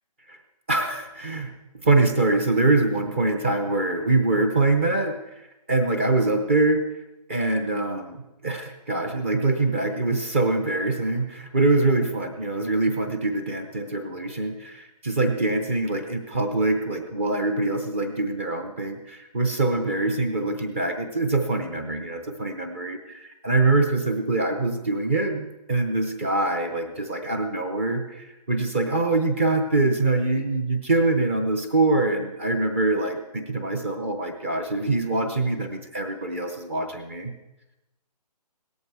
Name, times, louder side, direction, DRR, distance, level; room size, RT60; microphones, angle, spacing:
voice 1, 0.7-5.2 5.7-6.8 7.3-37.3, right 2 dB, 20° right, 6 dB, 0.7 m, -24 dB
17.0 x 13.5 x 4.8 m, 0.96 s
hypercardioid pair, 175°, 21 cm